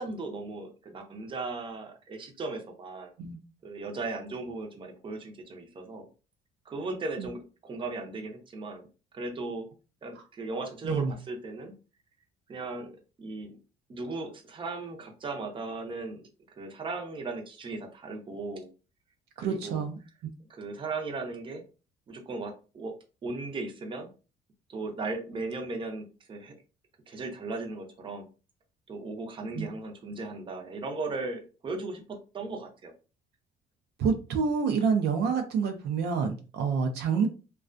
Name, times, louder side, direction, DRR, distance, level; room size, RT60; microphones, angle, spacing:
voice 1, 0.0-3.1 3.6-6.1 6.7-8.9 9.1-9.7 10.0-11.7 12.5-13.6 13.9-16.2 16.6-18.7 19.4-19.8 20.5-21.6 22.1-23.0 23.2-24.1 24.7-26.6 27.1-28.3 28.9-32.9, right 3 dB, 30° right, 3 dB, 0.6 m, -37 dB
voice 2, 19.4-20.0 29.5-29.7 34.0-37.3, right 5 dB, 75° right, 5 dB, 0.5 m, -27 dB
2.3 x 2.2 x 2.4 m, 0.34 s
cardioid pair, 110°, 17 cm